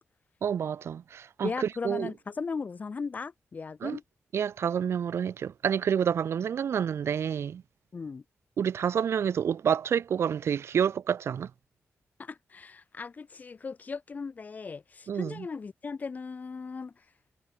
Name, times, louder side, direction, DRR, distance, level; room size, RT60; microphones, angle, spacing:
voice 1, 0.4-2.1 3.8-4.0 4.3-7.6 8.6-11.5 15.1-15.4, right 8 dB, 65° right, 1.3 m, -28 dB
voice 2, 1.4-4.0 7.9-8.2 12.2-17.0, left 5 dB, 35° left, 5.9 m, -37 dB
wide cardioid pair, 180°, 5 cm